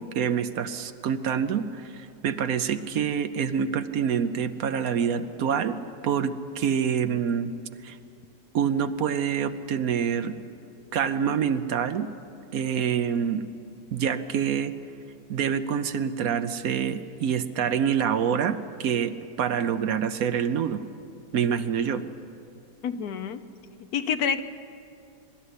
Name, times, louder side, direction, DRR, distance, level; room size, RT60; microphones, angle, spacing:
voice 1, 0.0-7.5 7.8-8.0 8.5-10.4 10.9-12.1 12.5-13.4 13.9-14.7 15.3-19.1 19.4-20.8 21.3-22.0, right 7 dB, 65° right, 11 dB, 1.1 m, -26 dB
voice 2, 22.8-23.4 23.9-24.4, left 7 dB, 70° left, 10 dB, 1.3 m, -27 dB
23.5 x 12.5 x 9.8 m, 2.6 s
omnidirectional pair, 1.7 m